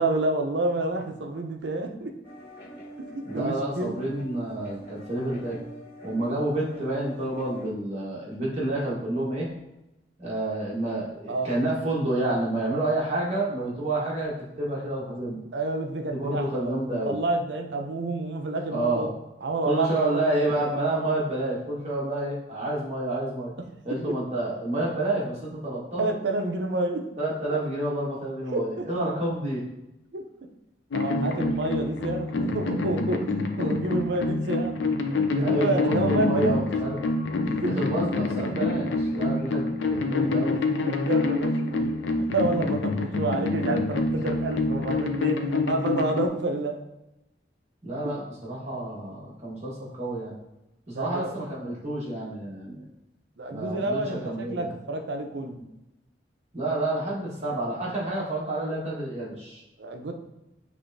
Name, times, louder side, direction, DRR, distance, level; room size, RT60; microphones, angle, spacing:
voice 1, 0.0-2.1 3.1-4.0 11.3-11.5 15.5-16.7 17.1-19.1 19.4-20.4 24.1-24.2 26.0-27.1 28.5-28.9 30.1-30.2 30.9-34.8 35.3-36.6 37.6-37.7 40.9-46.8 50.9-51.3 53.4-55.6 59.8-60.1, right 2 dB, 75° right, 4 dB, 0.6 m, -29 dB
sound 1, 2.2-7.7, right 1 dB, 65° left, 1.4 m, -44 dB
voice 2, 3.2-5.6 6.0-9.5 10.2-15.4 16.1-17.1 18.7-19.1 19.6-23.5 23.8-26.1 27.2-29.6 35.4-37.1 37.7-40.6 47.8-50.3 50.9-52.8 53.5-54.7 56.5-59.6, right 1 dB, 35° right, -5 dB, 1.3 m, -29 dB
sound 2, 30.9-46.3, left 3 dB, 85° left, 0.5 m, -27 dB
6.2 x 3.3 x 2.6 m, 0.93 s
head